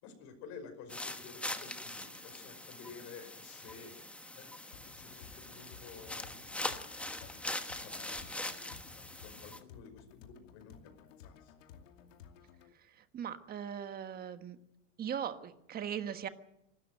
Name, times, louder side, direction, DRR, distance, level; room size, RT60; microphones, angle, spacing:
voice 1, 0.0-3.9 4.4-6.5 7.2-7.3 7.7-10.9 11.2-11.5, left 6 dB, 45° left, 6 dB, 5.6 m, -52 dB
sound 1, 0.9-9.6, left 1 dB, 5° left, 1.1 m, -42 dB
sound 2, 4.7-12.7, left 8 dB, 80° left, 2.6 m, -56 dB
voice 2, 13.1-14.6 15.0-16.3, right 8 dB, 25° right, 10 dB, 1.4 m, -39 dB
26.0 x 13.0 x 7.8 m, 0.85 s
supercardioid pair, 140°, 37 cm